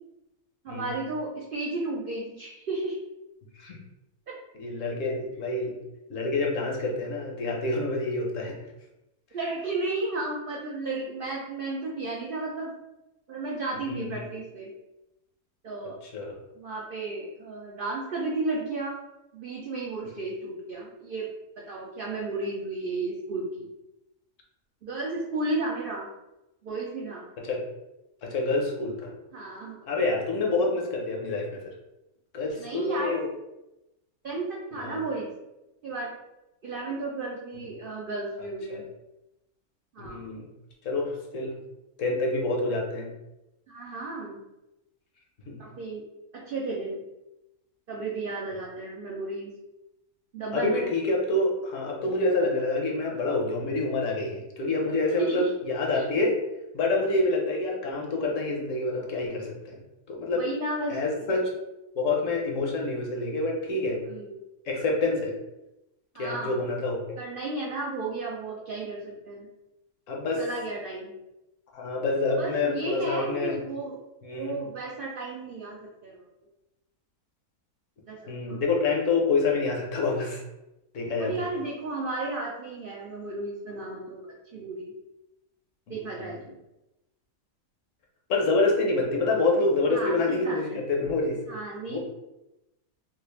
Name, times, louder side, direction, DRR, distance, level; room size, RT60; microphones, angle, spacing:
voice 1, 0.6-3.0 4.3-4.4 9.3-12.7 13.3-14.7 15.6-16.0 16.6-19.0 19.3-21.3 21.6-23.7 24.8-26.1 26.6-27.3 29.3-29.8 32.6-33.2 34.2-35.3 35.8-36.1 36.6-38.8 39.9-40.3 43.7-44.4 45.6-46.0 46.3-47.0 47.9-49.5 50.3-50.8 55.2-55.5 55.9-56.0 60.3-61.3 64.0-64.4 66.1-66.6 67.2-69.5 70.4-71.1 72.4-74.0 74.4-76.2 78.1-78.6 81.2-84.2 84.5-84.9 85.9-86.5 89.9-90.8 91.5-92.0, right 2 dB, 85° right, -3 dB, 0.4 m, -33 dB
voice 2, 4.5-5.8 6.1-8.6 13.9-14.1 16.1-16.3 27.5-27.6 28.2-29.1 29.9-31.6 32.3-33.3 34.8-35.0 37.6-37.7 38.7-38.8 40.0-40.5 40.8-41.5 42.0-43.1 45.5-45.6 50.5-56.4 56.7-59.8 60.1-60.5 60.9-61.4 62.0-64.0 64.7-65.3 66.2-67.2 70.1-70.4 71.7-73.5 74.2-74.6 78.3-80.4 80.9-81.3 86.2-86.3 88.3-91.4 91.9-92.0, left 2 dB, 65° left, 0 dB, 1.0 m, -27 dB
3.3 x 2.4 x 3.1 m, 0.94 s
omnidirectional pair, 1.5 m